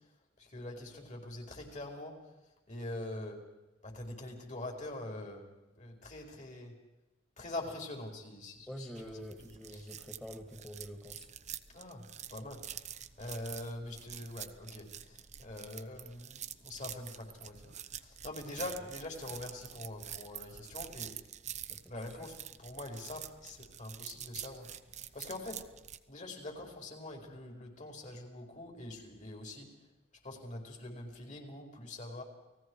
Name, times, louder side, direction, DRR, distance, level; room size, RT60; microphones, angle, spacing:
voice 1, 0.4-2.2 2.7-3.4 3.8-5.4 5.8-6.7 7.4-9.1 9.7-9.8 11.7-12.0 12.3-21.1 21.9-25.6 26.1-29.7 30.2-32.2, left 1 dB, 40° left, 3 dB, 4.8 m, -44 dB
voice 2, 8.7-11.3 21.7-21.9, equal, 5° left, 6 dB, 2.3 m, -46 dB
sound 1, 8.9-26.0, right 10 dB, 40° right, 1.1 m, -47 dB
29.5 x 19.5 x 4.8 m, 1.0 s
head